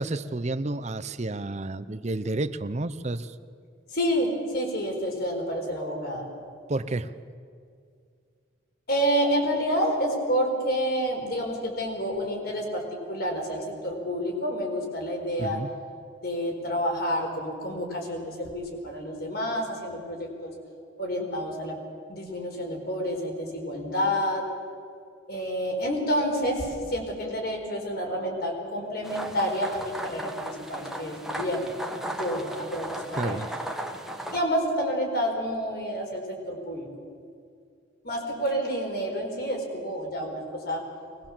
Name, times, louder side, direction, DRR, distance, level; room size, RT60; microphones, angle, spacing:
voice 1, 0.0-3.3 6.7-7.1 15.4-15.7 33.2-33.5, right 2 dB, 35° right, 12 dB, 0.7 m, -30 dB
voice 2, 3.9-6.3 8.9-15.6 16.2-20.5 21.0-21.8 22.1-24.5 25.3-31.7 32.1-33.4 34.3-36.9 38.0-40.8, equal, 50° left, 2 dB, 4.4 m, -29 dB
sound 1, 29.0-34.4, right 1 dB, ahead, 1.3 m, -36 dB
23.5 x 20.0 x 7.4 m, 2.3 s
head